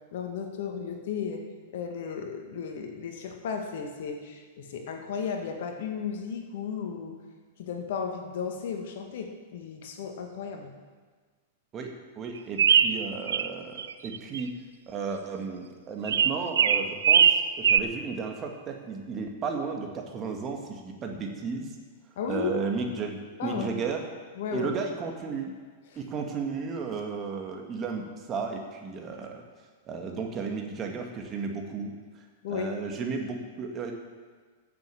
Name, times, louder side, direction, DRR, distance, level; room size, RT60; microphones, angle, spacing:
voice 1, 0.1-1.4 1.7-7.1 7.6-10.7 22.2-22.5 23.4-23.7 24.4-24.7 25.9-26.0 26.3-26.4 32.4-32.7, left 6 dB, 60° left, 4 dB, 1.8 m, -34 dB
voice 2, 11.7-21.7 22.3-24.0 24.5-25.5 26.0-29.4 29.9-33.9, right 5 dB, 30° right, 2 dB, 2.0 m, -34 dB
sound 1, 12.6-13.5 13.8-14.4 16.1-17.8, right 8 dB, 70° right, 0.5 m, -21 dB
15.0 x 7.1 x 7.0 m, 1.5 s
figure-of-eight pair, 100°, 0 cm